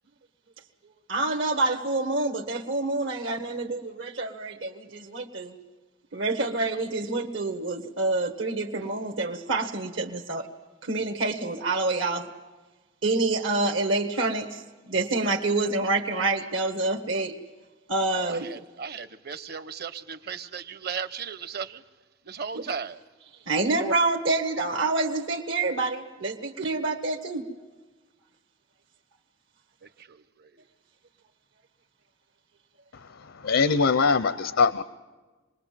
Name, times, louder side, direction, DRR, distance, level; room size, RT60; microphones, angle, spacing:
voice 1, 1.1-5.5 6.1-10.5 10.8-12.3 13.0-17.3 17.9-18.6 22.5-22.6 23.5-27.4, right 2 dB, 75° right, 3 dB, 1.5 m, -27 dB
voice 2, 18.1-21.8 22.3-23.0 30.0-30.6, right 6 dB, 50° right, 14 dB, 0.9 m, -36 dB
voice 3, 33.4-34.8, left 5 dB, 75° left, 15 dB, 0.7 m, -22 dB
26.0 x 20.5 x 7.6 m, 1.3 s
head